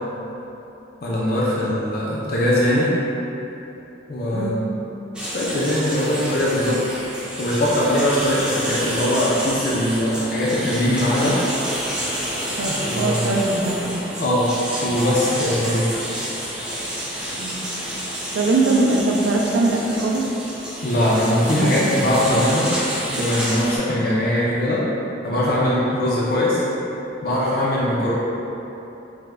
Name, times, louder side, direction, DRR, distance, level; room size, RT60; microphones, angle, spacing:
voice 1, 1.0-2.9 4.1-4.6 5.2-6.8 7.4-11.4 12.6-13.4 14.2-14.5 14.8-15.9 20.8-22.7 23.1-24.9 25.2-26.6 27.2-28.1, left 1 dB, 55° left, -6 dB, 0.5 m, -21 dB
sound 1, 5.1-23.8, equal, 5° right, 0.5 m, -29 dB
voice 2, 12.6-14.0 17.4-17.6 18.3-20.3 21.4-22.0, right 2 dB, 80° right, 0 dB, 0.4 m, -21 dB
4.9 x 2.2 x 3.2 m, 3.0 s
head